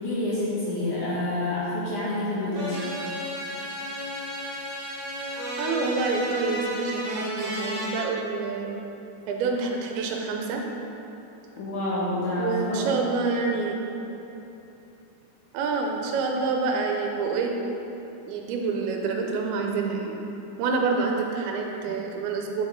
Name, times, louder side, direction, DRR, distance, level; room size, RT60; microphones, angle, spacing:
voice 1, 0.0-2.8 11.6-12.9, left 1 dB, 70° left, -8 dB, 2.1 m, -28 dB
sound 1, 2.5-8.0, equal, 55° right, 2.0 m, -32 dB
voice 2, 5.6-8.8 9.3-10.6 12.4-13.8 15.5-17.5 18.3-20.2 20.6-22.6, right 4 dB, 90° right, 1 dB, 2.6 m, -27 dB
7.5 x 5.5 x 3.7 m, 3.0 s
omnidirectional pair, 4.3 m